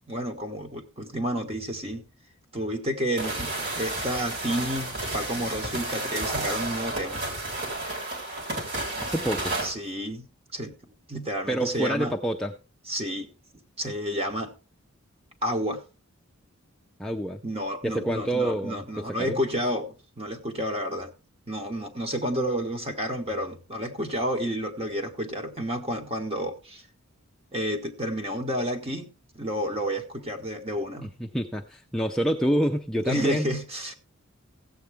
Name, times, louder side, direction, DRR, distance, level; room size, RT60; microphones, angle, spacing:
voice 1, 0.1-2.0 2.5-7.3 9.6-10.3 10.5-10.7 11.1-12.1 12.9-13.3 13.8-14.5 15.4-15.8 17.4-21.1 21.5-26.8 27.5-29.1 29.3-31.1 33.0-33.9, equal, 30° right, 1.4 m, -30 dB
sound 1, 3.2-9.7, right 2 dB, 50° right, 3.4 m, -31 dB
voice 2, 9.0-9.6 11.5-12.6 17.0-17.4 17.8-19.4 31.0-33.5, right 1 dB, 5° left, 0.5 m, -27 dB
16.0 x 8.0 x 3.5 m
head